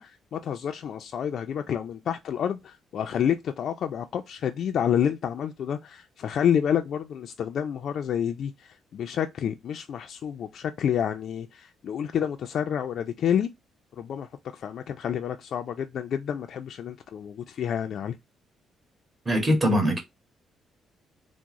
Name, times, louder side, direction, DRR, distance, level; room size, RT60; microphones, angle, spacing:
voice 1, 0.0-13.5 14.0-18.2, left 8 dB, 65° left, 0.3 m, -29 dB
voice 2, 19.2-20.0, equal, 25° right, 1.5 m, -22 dB
3.5 x 2.0 x 2.9 m
cardioid pair, 90°, 0 cm